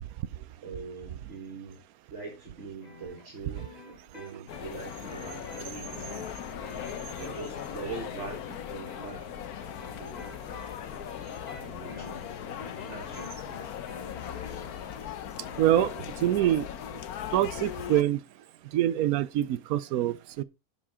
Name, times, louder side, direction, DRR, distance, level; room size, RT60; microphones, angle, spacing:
voice 1, 0.6-1.8 2.1-6.2 7.0-9.2 10.0-10.3 11.6-12.2 12.5-13.7, right 4 dB, 55° right, 1.9 m, -43 dB
sound 1, 2.8-14.8, left 2 dB, 30° left, 2.0 m, -49 dB
sound 2, 4.5-18.0, left 10 dB, 90° left, 1.3 m, -39 dB
voice 2, 15.6-16.7 17.3-18.2 18.7-20.4, right 12 dB, 80° right, 1.1 m, -25 dB
11.0 x 7.5 x 3.6 m
omnidirectional pair, 1.5 m